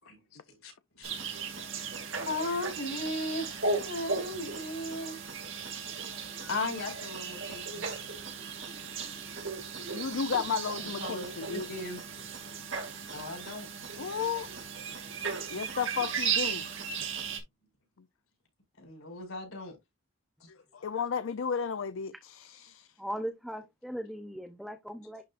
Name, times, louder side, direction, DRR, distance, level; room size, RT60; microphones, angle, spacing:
sound 1, 1.0-17.4, right 5 dB, 65° right, 2.2 m, -36 dB
voice 1, 2.2-5.2 6.5-7.8 11.0-12.0 13.1-13.7 18.8-19.8 20.4-20.5, left 2 dB, 90° left, 5.0 m, -36 dB
voice 2, 9.9-11.9 14.0-14.5 15.5-16.7 20.5-22.9, left 6 dB, 70° left, 0.5 m, -33 dB
voice 3, 23.0-25.2, equal, ahead, 0.6 m, -38 dB
11.0 x 4.0 x 2.5 m
head